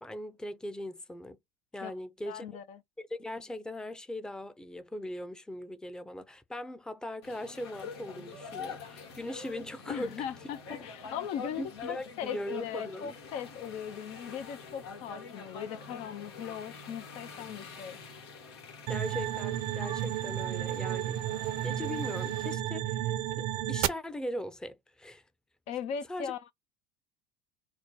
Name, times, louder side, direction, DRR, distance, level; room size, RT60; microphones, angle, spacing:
voice 1, 0.0-1.4 1.7-2.5 3.0-10.2 11.6-13.1 18.9-21.2 21.6-25.2 26.1-26.3, left 1 dB, 5° left, 0.6 m, -40 dB
voice 2, 2.3-2.8 9.9-18.0 25.7-26.4, left 8 dB, 55° left, 0.5 m, -39 dB
sound 1, 7.2-22.5, left 4 dB, 90° left, 1.3 m, -45 dB
sound 2, 18.9-23.9, right 13 dB, 65° right, 0.6 m, -32 dB
4.1 x 2.1 x 4.4 m
supercardioid pair, 95°, 13 cm